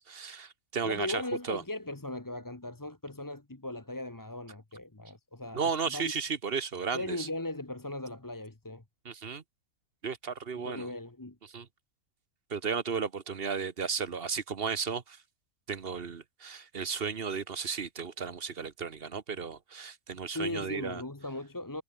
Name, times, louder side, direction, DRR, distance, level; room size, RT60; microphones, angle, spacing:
voice 1, 0.0-1.2 1.5-1.6 5.5-7.3 9.0-9.4 10.0-10.9 11.5-11.7 12.5-15.2 15.7-21.0, right 6 dB, 45° right, 1.4 m, -34 dB
voice 2, 0.8-6.1 6.9-8.8 10.5-11.4 20.3-21.8, left 1 dB, 15° left, 1.3 m, -38 dB
omnidirectional pair, 1.4 m